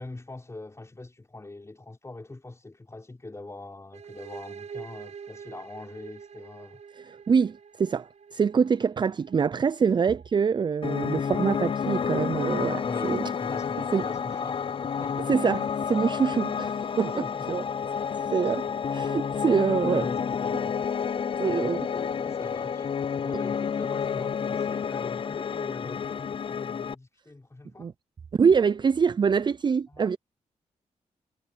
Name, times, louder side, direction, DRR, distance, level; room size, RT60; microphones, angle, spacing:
voice 1, 0.0-6.8 12.8-15.3 17.0-17.5 18.4-18.8 19.8-20.7 21.7-22.9 23.2-27.9 29.9-30.1, left 2 dB, 25° left, 4.7 m, -43 dB
sound 1, 3.9-11.6, right 6 dB, 65° right, 3.9 m, -47 dB
voice 2, 7.3-13.2 13.9-14.0 15.3-17.2 17.5-17.6 18.3-18.7 18.9-20.1 21.4-21.8 27.8-27.9 28.3-30.2, right 6 dB, 35° right, 0.4 m, -25 dB
Piano, 10.8-26.9, left 7 dB, 45° left, 0.5 m, -30 dB
cardioid pair, 70°, 13 cm